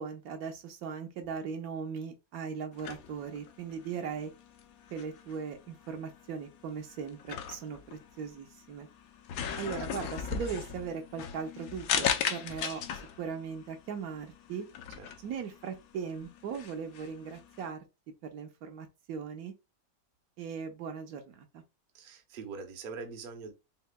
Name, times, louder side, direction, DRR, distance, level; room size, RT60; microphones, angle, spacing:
voice 1, 0.0-4.3 4.9-8.9 9.6-12.8 13.2-14.7 15.2-17.8 18.3-19.5 20.4-21.6, right 6 dB, 80° right, 1.2 m, -39 dB
sound 1, 2.7-17.7, left 8 dB, 75° left, 1.0 m, -38 dB
voice 2, 21.9-23.5, right 4 dB, 50° right, 0.7 m, -42 dB
5.5 x 2.1 x 2.2 m
omnidirectional pair, 1.6 m